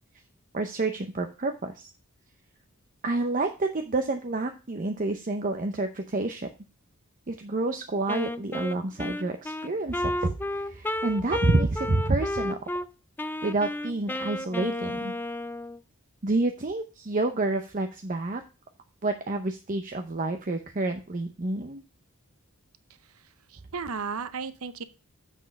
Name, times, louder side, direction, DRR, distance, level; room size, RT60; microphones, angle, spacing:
voice 1, 0.5-1.9 3.0-6.5 7.3-12.6 13.4-15.2 16.2-18.4 19.0-21.8, right 2 dB, 40° right, 6 dB, 0.7 m, -28 dB
Wind instrument woodwind instrument, 8.1-12.9 13.2-15.8, left 1 dB, 10° left, 0.3 m, -32 dB
voice 2, 23.0-24.8, right 5 dB, 90° right, 14 dB, 0.7 m, -35 dB
7.3 x 6.2 x 5.3 m, 0.32 s
head